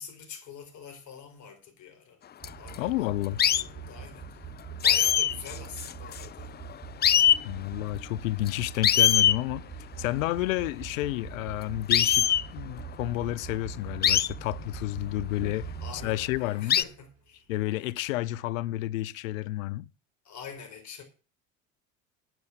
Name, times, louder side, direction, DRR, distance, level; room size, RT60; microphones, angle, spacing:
voice 1, 0.0-2.2 2.6-3.1 3.5-6.5 15.5-17.5 20.2-21.0, left 6 dB, 45° left, 4.4 m, -45 dB
sound 1, 2.4-2.7 3.4-3.6 4.8-6.4 6.7-6.8 7.0-7.4 8.5-8.6 8.8-9.4 11.9-12.4 14.0-14.3 15.4-15.5 16.7-16.8, left 10 dB, 25° left, 0.5 m, -22 dB
sound 2, 2.4-16.6 16.9-17.3 17.7-17.8 18.0-18.2, right 6 dB, 35° right, 3.9 m, -43 dB
voice 2, 2.8-3.4 7.4-9.7 10.0-16.8 17.5-19.9, left 16 dB, 75° left, 0.7 m, -31 dB
9.3 x 9.2 x 7.6 m
hypercardioid pair, 75°, 40 cm